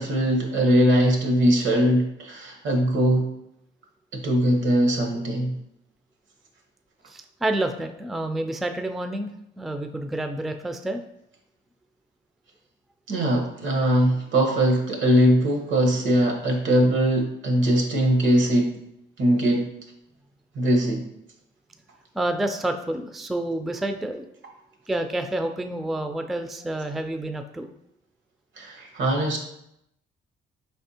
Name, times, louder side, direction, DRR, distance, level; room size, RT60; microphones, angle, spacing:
voice 1, 0.0-3.3 4.1-5.5 13.1-18.7 19.2-19.7 20.5-21.0 28.6-29.4, equal, 75° right, 2 dB, 1.1 m, -21 dB
voice 2, 7.1-9.3 9.6-11.0 22.1-24.3 24.9-27.7, right 1 dB, ahead, 7 dB, 0.3 m, -29 dB
4.8 x 3.4 x 2.8 m, 0.78 s
cardioid pair, 90°, 20 cm